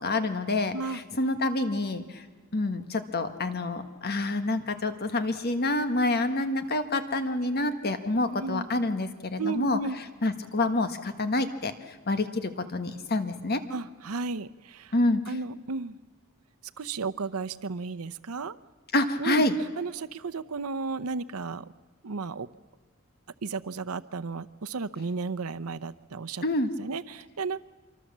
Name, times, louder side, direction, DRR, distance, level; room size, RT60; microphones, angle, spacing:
voice 1, 0.0-2.2 2.5-9.8 10.2-11.7 12.1-13.6 14.9-15.3 18.9-19.5 26.4-26.7, left 2 dB, 50° left, 8 dB, 1.5 m, -27 dB
voice 2, 8.3-8.7 9.4-10.0 13.7-14.9 15.3-16.0 16.8-18.6 19.2-19.4 19.8-21.6 22.0-22.5 23.4-26.4 26.8-27.6, right 4 dB, 90° right, 12 dB, 0.8 m, -33 dB
26.0 x 24.0 x 7.4 m, 1.4 s
head